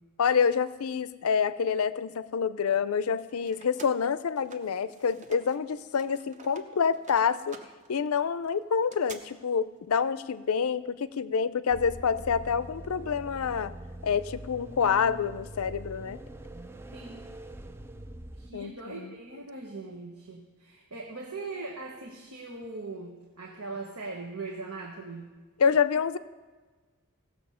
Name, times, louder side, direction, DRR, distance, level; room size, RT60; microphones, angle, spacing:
voice 1, 0.2-7.6 7.9-13.7 14.0-16.2 18.5-19.1 25.6-26.2, left 6 dB, 75° left, 15 dB, 0.5 m, -27 dB
sound 1, 3.0-5.6 5.9-9.2, right 4 dB, 35° right, 0.8 m, -50 dB
sound 2, 11.7-18.5, right 1 dB, 10° right, 0.4 m, -43 dB
voice 2, 16.9-17.3 18.4-25.3, right 3 dB, 85° right, 0 dB, 1.4 m, -40 dB
16.5 x 7.0 x 5.6 m, 1.4 s
head